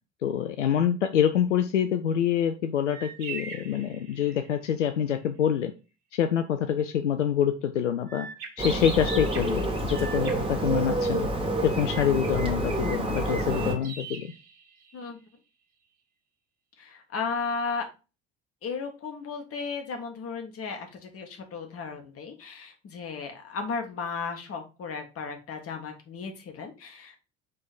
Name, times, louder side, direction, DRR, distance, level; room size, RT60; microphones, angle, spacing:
voice 1, 0.2-5.7 6.1-8.3 8.6-11.3 11.6-14.3, left 9 dB, 80° left, 8 dB, 0.5 m, -26 dB
sound 1, 2.9-4.6 8.1-11.2 11.6-15.1, right 5 dB, 65° right, 1.7 m, -42 dB
Bird, 8.6-13.7, right 1 dB, 15° right, 1.7 m, -28 dB
voice 2, 16.8-17.9 18.6-27.2, left 5 dB, 40° left, 4 dB, 1.7 m, -35 dB
5.3 x 3.7 x 5.4 m, 0.31 s
figure-of-eight pair, 60°, 36 cm